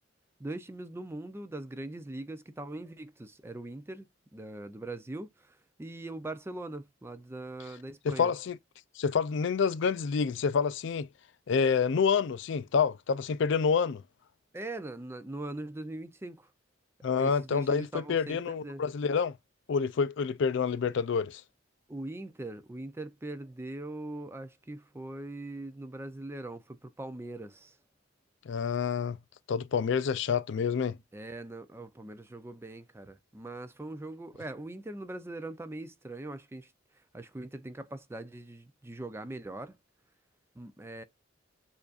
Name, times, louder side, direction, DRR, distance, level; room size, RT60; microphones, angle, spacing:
voice 1, 0.4-4.1 4.3-8.3 14.5-16.5 17.2-18.8 21.9-27.7 31.1-36.7 37.1-39.8 40.6-41.0, right 2 dB, 15° right, 0.4 m, -41 dB
voice 2, 8.0-8.6 9.0-11.1 11.5-14.0 17.0-19.3 19.7-21.4 28.5-29.2 29.5-31.0, left 6 dB, 65° left, 0.4 m, -28 dB
6.9 x 2.6 x 2.4 m
head